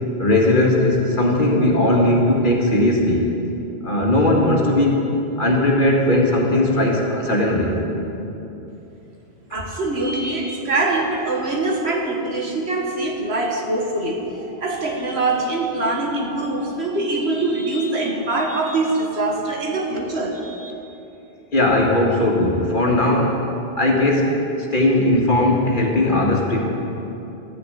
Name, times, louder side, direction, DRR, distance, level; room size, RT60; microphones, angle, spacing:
voice 1, 0.2-3.2 3.8-5.0 5.4-7.8 21.5-23.4 23.7-24.3 24.7-26.7, left 1 dB, 45° left, -1 dB, 1.9 m, -18 dB
voice 2, 9.5-20.7, right 2 dB, 65° right, 0 dB, 1.8 m, -23 dB
13.0 x 7.0 x 9.7 m, 2.9 s
omnidirectional pair, 1.1 m